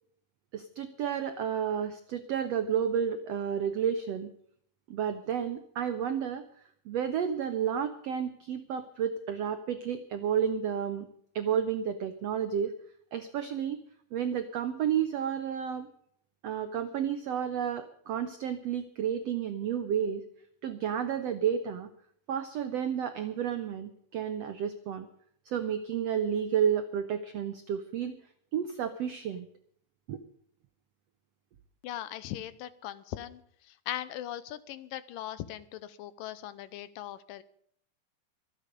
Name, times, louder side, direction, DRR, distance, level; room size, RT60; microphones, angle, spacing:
voice 1, 0.5-4.3 4.9-6.5 6.9-11.1 11.3-12.7 13.1-13.8 14.1-15.9 16.4-20.2 20.6-21.9 22.3-25.1 25.4-28.1 28.5-29.5 30.1-30.2, right 8 dB, 90° right, 9 dB, 1.4 m, -31 dB
voice 2, 31.8-37.4, left 13 dB, 80° left, 15 dB, 2.4 m, -40 dB
24.5 x 8.4 x 5.2 m, 0.66 s
omnidirectional pair, 4.2 m